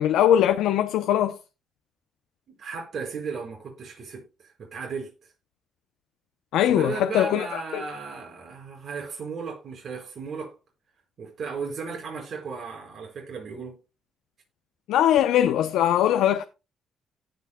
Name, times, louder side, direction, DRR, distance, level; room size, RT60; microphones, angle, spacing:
voice 1, 0.0-1.4 6.5-7.8 14.9-16.4, left 11 dB, 90° left, 0.6 m, -21 dB
voice 2, 2.6-5.1 6.7-10.5 11.2-13.8, right 5 dB, 55° right, 5.2 m, -35 dB
17.5 x 6.1 x 2.2 m
cardioid pair, 90°, 0 cm